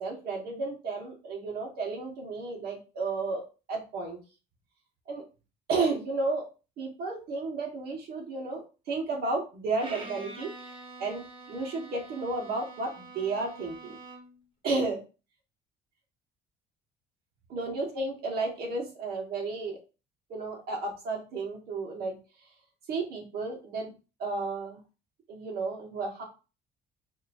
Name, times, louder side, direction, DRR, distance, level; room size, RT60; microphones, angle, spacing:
voice 1, 0.0-3.4 3.7-4.2 5.1-5.2 5.7-6.4 6.8-10.7 11.0-14.0 14.6-15.0 17.5-19.8 20.3-22.1 22.9-23.9 24.2-24.8 25.3-26.2, right 3 dB, 70° right, 0 dB, 1.6 m, -32 dB
Bowed string instrument, 9.8-14.5, right 2 dB, 30° right, 1.0 m, -46 dB
4.3 x 2.9 x 2.6 m, 0.31 s
cardioid pair, 110°, 17 cm